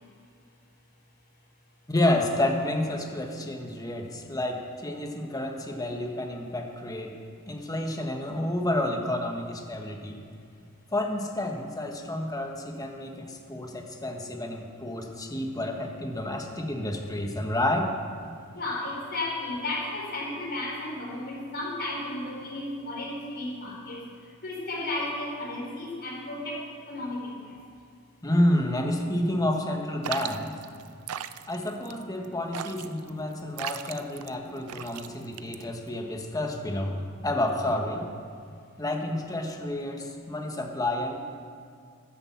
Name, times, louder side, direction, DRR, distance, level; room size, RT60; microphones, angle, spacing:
voice 1, 1.9-7.1 7.5-10.2 10.9-17.9 28.2-30.5 31.5-38.1 38.8-41.2, left 1 dB, 15° left, 2 dB, 1.3 m, -29 dB
voice 2, 18.5-24.0 24.4-26.6 26.9-27.4, left 2 dB, 45° left, -3 dB, 4.0 m, -33 dB
sound 1, 30.0-36.0, right 9 dB, 90° right, 0.5 m, -38 dB
12.0 x 9.8 x 7.3 m, 2.3 s
head